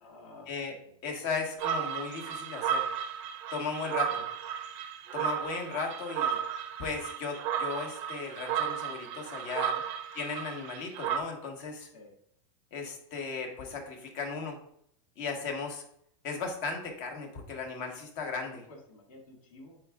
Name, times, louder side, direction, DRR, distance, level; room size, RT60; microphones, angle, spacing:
voice 1, 0.0-0.5 0.8-1.3 4.1-4.3 9.7-9.9 11.9-12.1 18.7-19.8, left 2 dB, 80° left, -1 dB, 2.0 m, -52 dB
voice 2, 1.0-2.9 3.5-4.2 5.1-6.4 6.8-9.7 10.1-11.9 12.7-14.6 15.2-15.8 16.2-18.6, left 4 dB, 45° left, 3 dB, 1.5 m, -36 dB
sound 1, 1.6-11.2, right 8 dB, 40° right, 0.6 m, -34 dB
8.5 x 4.6 x 2.4 m, 0.69 s
supercardioid pair, 155°, 18 cm